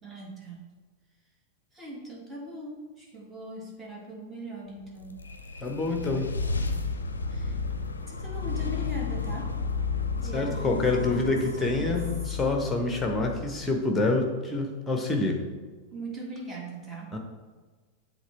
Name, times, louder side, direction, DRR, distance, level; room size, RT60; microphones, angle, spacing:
voice 1, 0.0-0.7 1.7-5.1 5.5-5.6 6.1-6.3 7.3-7.6 8.1-9.5 10.2-11.9 12.3-12.4 15.9-17.2, right 2 dB, 15° right, -2 dB, 1.9 m, -40 dB
sound 1, 4.8-14.1, left 4 dB, 75° left, 0.5 m, -32 dB
voice 2, 5.6-6.3 10.3-15.4 17.1-17.2, left 3 dB, 10° left, 2 dB, 1.2 m, -27 dB
7.9 x 3.5 x 4.4 m, 1.4 s
figure-of-eight pair, 90°, 0 cm